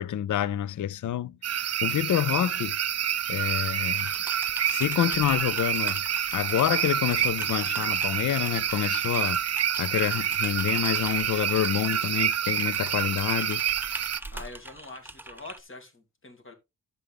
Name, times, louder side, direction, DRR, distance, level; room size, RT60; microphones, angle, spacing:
voice 1, 0.0-2.8 3.3-4.1 4.7-6.0 6.3-9.4 9.8-13.6, left 11 dB, 65° left, 0.5 m, -28 dB
sound 1, 1.4-14.2, right 10 dB, 50° right, 0.5 m, -28 dB
Typing, 3.9-15.6, right 2 dB, 5° right, 0.7 m, -43 dB
voice 2, 14.3-16.5, left 2 dB, 40° left, 2.6 m, -44 dB
11.5 x 7.0 x 3.6 m
wide cardioid pair, 95°, 33 cm